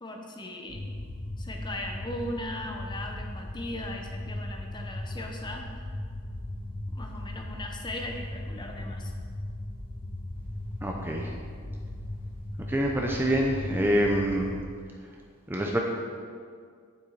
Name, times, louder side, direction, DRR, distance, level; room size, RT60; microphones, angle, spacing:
voice 1, 0.0-0.8 1.4-5.6 6.9-9.1, left 1 dB, 20° left, 2 dB, 0.9 m, -38 dB
sound 1, 0.7-14.6, left 1 dB, 40° left, 2.3 m, -38 dB
voice 2, 10.8-11.3 12.7-14.5 15.5-15.8, right 1 dB, 10° right, 0 dB, 0.6 m, -26 dB
9.3 x 7.5 x 4.1 m, 2.1 s
head